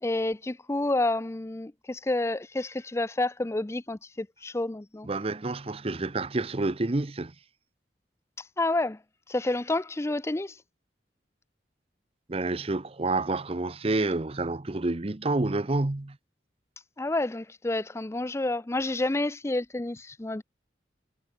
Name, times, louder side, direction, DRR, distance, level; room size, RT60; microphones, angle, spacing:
voice 1, 0.0-5.1 8.6-9.0 9.3-10.6 17.0-20.4, left 2 dB, 15° left, 0.5 m, -29 dB
voice 2, 5.0-7.3 12.3-16.2, right 2 dB, 35° right, 0.8 m, -28 dB
head